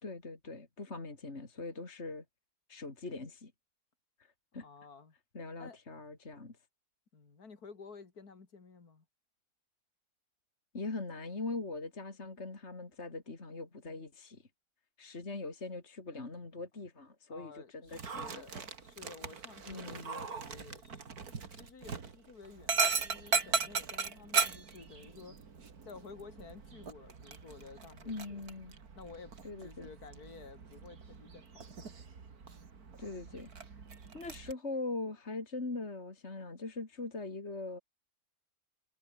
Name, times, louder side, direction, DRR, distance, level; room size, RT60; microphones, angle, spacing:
voice 1, 0.0-2.2 2.7-3.5 4.2-4.6 5.3-6.6 10.7-14.5 15.0-18.6 19.7-20.2 28.1-28.7 29.4-29.9 33.0-33.5 34.1-37.8, left 3 dB, 45° left, 3.3 m, -41 dB
voice 2, 4.6-5.1 5.6-5.8 7.1-9.0 17.3-25.4 25.8-28.4 28.9-29.3 29.6-31.9, left 5 dB, 70° left, 3.3 m, -52 dB
Dog, 17.9-34.5, right 5 dB, 70° right, 2.7 m, -38 dB
omnidirectional pair, 1.7 m